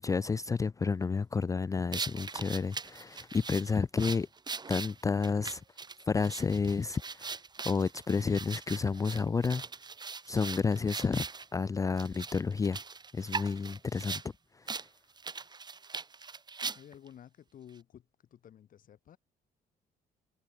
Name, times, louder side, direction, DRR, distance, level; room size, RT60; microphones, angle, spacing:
voice 1, 0.0-4.3 4.7-5.6 6.1-7.4 7.6-9.6 10.3-11.3 11.5-12.8 13.1-14.2 14.6-14.7, left 5 dB, 20° left, 0.4 m, -30 dB
sound 1, 1.9-11.5 12.0-14.3 14.7-14.9 15.2-17.1, right 4 dB, 25° right, 2.4 m, -40 dB
voice 2, 16.7-19.2, left 10 dB, 55° left, 6.0 m, -53 dB
cardioid pair, 110°, 17 cm